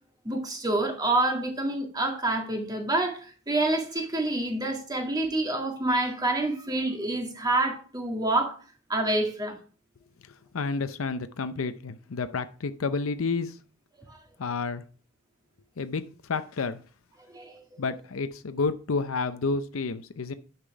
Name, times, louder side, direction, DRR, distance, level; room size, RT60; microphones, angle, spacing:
voice 1, 0.3-3.2 3.5-8.6 8.9-9.6 17.3-17.6, right 2 dB, 20° right, 1.9 m, -27 dB
voice 2, 10.5-13.6 14.4-14.8 15.8-16.8 17.8-20.3, left 4 dB, 75° left, 0.6 m, -30 dB
9.9 x 5.9 x 4.7 m
head